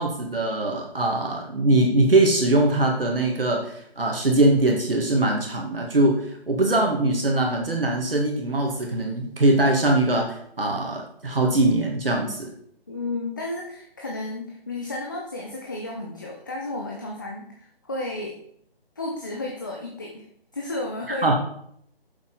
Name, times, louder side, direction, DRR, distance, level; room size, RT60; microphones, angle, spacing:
voice 1, 0.0-12.5 21.2-21.3, right 2 dB, 65° right, 0 dB, 1.9 m, -22 dB
voice 2, 12.9-18.4 19.0-20.3 20.5-21.3, left 2 dB, 20° left, -1 dB, 0.7 m, -32 dB
9.4 x 7.3 x 4.0 m, 0.69 s
figure-of-eight pair, 155°, 31 cm